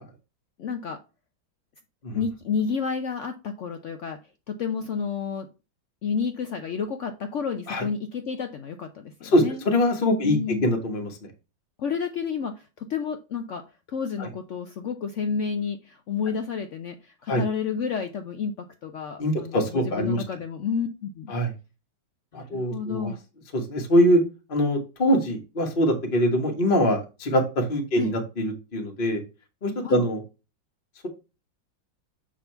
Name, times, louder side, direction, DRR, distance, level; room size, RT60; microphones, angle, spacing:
voice 1, 0.6-1.0 2.1-4.2 4.5-5.5 6.0-9.6 10.2-10.7 11.8-21.3 22.3-23.2 28.0-28.1 29.8-30.0, left 6 dB, 85° left, 7 dB, 0.6 m, -30 dB
voice 2, 9.2-11.2 14.2-14.3 17.3-17.4 19.2-20.2 21.3-21.5 22.3-23.1 23.5-24.2 24.5-29.2 29.6-30.2, equal, 30° left, 2 dB, 1.3 m, -23 dB
7.4 x 3.7 x 4.4 m, 0.29 s
omnidirectional pair, 2.1 m